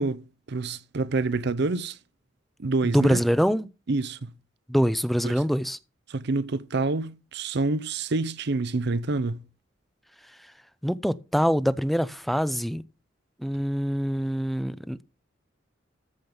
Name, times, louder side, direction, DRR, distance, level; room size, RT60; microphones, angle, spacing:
voice 1, 0.0-2.0 2.6-3.2 3.9-4.3 5.2-5.3 6.1-9.4, right 3 dB, 60° right, 0.7 m, -27 dB
voice 2, 2.8-3.7 4.7-5.8 10.8-12.8 13.4-15.0, equal, ahead, 0.5 m, -24 dB
14.0 x 5.2 x 5.4 m
head